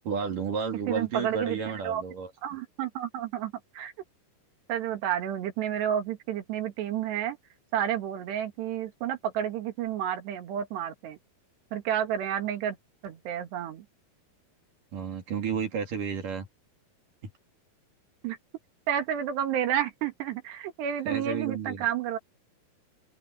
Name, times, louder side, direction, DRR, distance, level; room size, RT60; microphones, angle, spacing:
voice 1, 0.0-2.3 14.9-16.5 21.1-21.9, right 6 dB, 55° right, 4.6 m, -32 dB
voice 2, 0.9-1.6 1.8-2.0 2.4-3.9 4.7-7.4 7.7-11.2 11.7-12.8 13.0-13.9 18.2-18.4 18.9-22.2, right 10 dB, 85° right, 4.2 m, -30 dB
open air
omnidirectional pair, 4.8 m